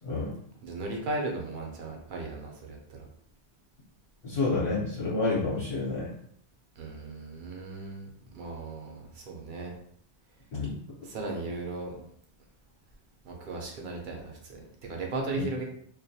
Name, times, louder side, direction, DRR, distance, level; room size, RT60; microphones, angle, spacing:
voice 1, 0.0-0.3 4.2-6.1 10.5-10.8 15.3-15.4, left 3 dB, 60° left, -6 dB, 0.9 m, -29 dB
voice 2, 0.6-3.1 6.8-9.7 11.0-12.1 13.2-15.6, right 2 dB, 55° right, 0 dB, 0.6 m, -36 dB
2.3 x 2.1 x 2.6 m, 0.66 s
omnidirectional pair, 1.2 m